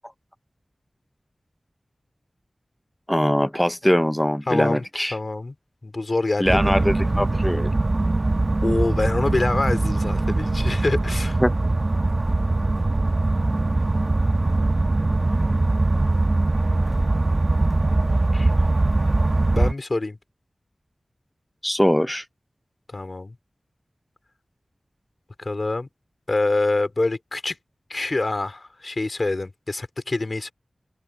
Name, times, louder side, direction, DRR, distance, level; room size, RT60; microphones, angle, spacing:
voice 1, 3.1-5.1 6.4-7.7 11.4-11.5 21.6-22.2, equal, 5° left, 0.6 m, -21 dB
voice 2, 4.5-4.8 5.1-5.5 5.8-6.8 8.6-11.4 18.3-18.5 19.5-20.2 22.9-23.3 25.4-25.9 26.3-27.6 27.9-30.5, left 2 dB, 50° left, 3.1 m, -25 dB
sound 1, 6.4-19.7, right 2 dB, 45° right, 1.2 m, -21 dB
wide cardioid pair, 65°, 0 cm